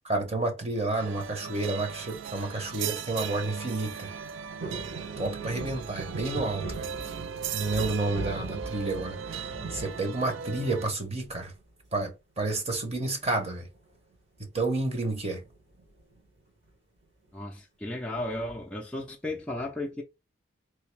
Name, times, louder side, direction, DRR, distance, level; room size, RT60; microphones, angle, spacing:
voice 1, 0.1-4.1 5.2-6.9 7.5-11.5 11.9-13.7 14.5-15.4, right 2 dB, 35° right, 0.9 m, -30 dB
sound 1, 1.0-10.9, right 8 dB, 80° right, 0.3 m, -38 dB
sound 2, 4.6-10.8 11.2-11.8 13.1-13.5 13.8-13.9 14.1-14.4 15.3-16.2 16.7-16.8, right 2 dB, 65° right, 1.5 m, -39 dB
voice 2, 17.3-20.0, left 1 dB, 5° left, 0.4 m, -34 dB
3.2 x 2.7 x 3.2 m
head